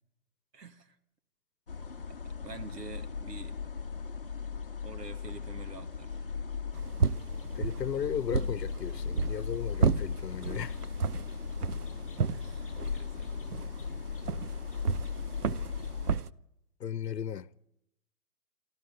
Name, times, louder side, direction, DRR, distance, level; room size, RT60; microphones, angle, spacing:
voice 1, 0.5-1.0 2.1-3.6 4.8-6.2 12.3-13.5, right 4 dB, 85° right, 2.5 m, -47 dB
sound 1, 1.7-16.2, left 5 dB, 35° left, 0.8 m, -37 dB
sound 2, 6.7-16.3, right 5 dB, 70° right, 0.9 m, -33 dB
voice 2, 7.5-10.8 16.8-17.5, left 8 dB, 85° left, 1.0 m, -35 dB
25.0 x 14.0 x 9.3 m
hypercardioid pair, 180°, 48 cm